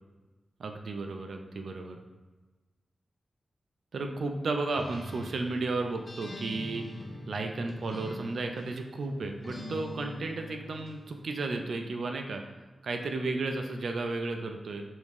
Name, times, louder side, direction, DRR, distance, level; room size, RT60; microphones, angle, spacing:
voice 1, 0.6-2.0 3.9-6.8 7.3-12.4 12.8-14.8, right 3 dB, 75° right, 4 dB, 0.4 m, -33 dB
Acoustic guitar, 4.7-8.8 9.4-11.0, left 1 dB, 30° left, 0.7 m, -43 dB
4.8 x 2.6 x 3.5 m, 1.2 s
wide cardioid pair, 130°, 0 cm